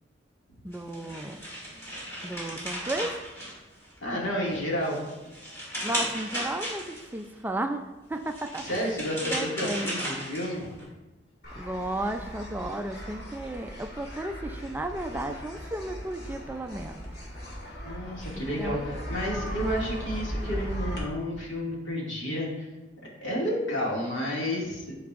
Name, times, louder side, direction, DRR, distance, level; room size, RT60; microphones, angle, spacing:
voice 1, 0.6-1.4 1.8-1.9 2.2-3.1 5.8-7.8 8.1-8.8 9.3-10.0 11.6-17.0 18.3-18.8, right 1 dB, 10° right, 6 dB, 0.3 m, -34 dB
sound 1, 0.7-4.1 4.5-7.2 8.1-10.8, equal, 15° left, 2.3 m, -35 dB
voice 2, 4.0-5.1 8.6-10.7 17.8-22.7 23.2-25.0, equal, 80° left, -4 dB, 2.1 m, -31 dB
sound 2, 11.4-21.0, equal, 55° left, 2.0 m, -37 dB
12.0 x 4.7 x 2.4 m, 1.1 s
head